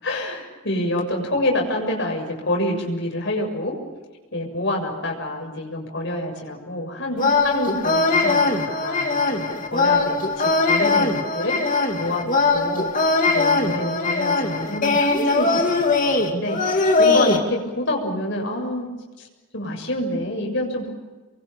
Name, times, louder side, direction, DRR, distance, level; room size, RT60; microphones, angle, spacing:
voice 1, 0.0-3.8 4.3-9.4 9.7-18.9 19.2-19.3 19.5-20.9, left 1 dB, 55° left, 0 dB, 7.2 m, -27 dB
sound 1, 7.2-17.4, left 3 dB, 35° left, 2.6 m, -20 dB
29.0 x 23.5 x 7.1 m, 1.2 s
head